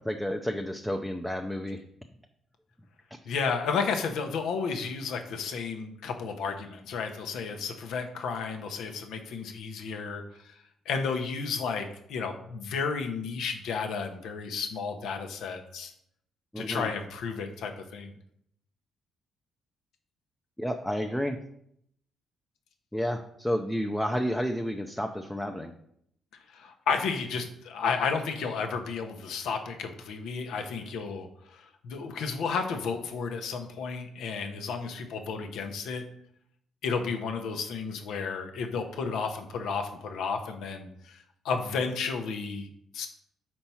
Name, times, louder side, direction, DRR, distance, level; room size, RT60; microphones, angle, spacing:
voice 1, 0.1-1.8 16.5-16.9 20.6-21.4 22.9-25.7, equal, 5° left, 4 dB, 0.5 m, -31 dB
voice 2, 3.2-10.6 10.9-15.9 16.6-18.1 26.5-36.0 36.8-43.1, left 5 dB, 80° left, 5 dB, 0.8 m, -32 dB
4.6 x 4.3 x 5.5 m, 0.72 s
cardioid pair, 90°, 0 cm